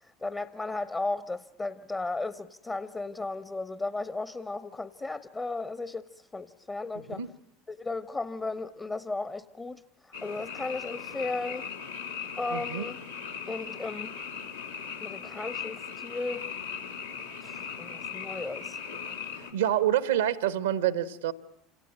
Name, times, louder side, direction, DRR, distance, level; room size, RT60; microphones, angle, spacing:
voice 1, 0.0-7.2 7.7-11.7 12.4-13.0 13.5-14.2 15.0-16.5 17.4-18.8, left 3 dB, 20° left, 1.0 m, -35 dB
Frog, 10.1-19.5, left 6 dB, 85° left, 3.3 m, -38 dB
voice 2, 12.5-12.9 19.4-21.3, right 11 dB, 70° right, 1.0 m, -27 dB
27.5 x 18.0 x 8.8 m
figure-of-eight pair, 70°, 0 cm